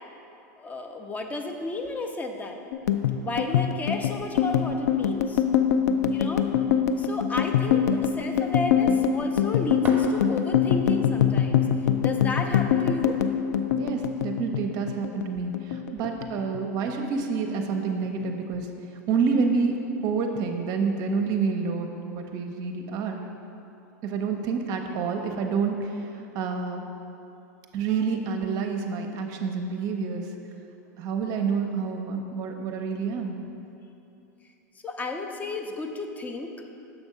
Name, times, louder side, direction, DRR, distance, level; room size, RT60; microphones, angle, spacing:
voice 1, 0.6-2.6 3.2-5.4 6.1-6.5 6.9-11.6 12.0-13.2 34.8-36.5, left 2 dB, 15° left, 5 dB, 0.5 m, -33 dB
sound 1, 2.7-15.3 15.5-16.6 16.9-17.2 17.5-18.2, left 8 dB, 75° left, 0.4 m, -23 dB
sound 2, 9.7-10.8, right 3 dB, 20° right, 0.9 m, -39 dB
voice 2, 13.7-18.7 19.1-19.7 20.0-23.2 24.0-26.8 27.7-30.2 31.0-33.4, right 5 dB, 45° right, 4 dB, 0.6 m, -28 dB
6.9 x 3.5 x 5.5 m, 2.8 s
hypercardioid pair, 115°, 9 cm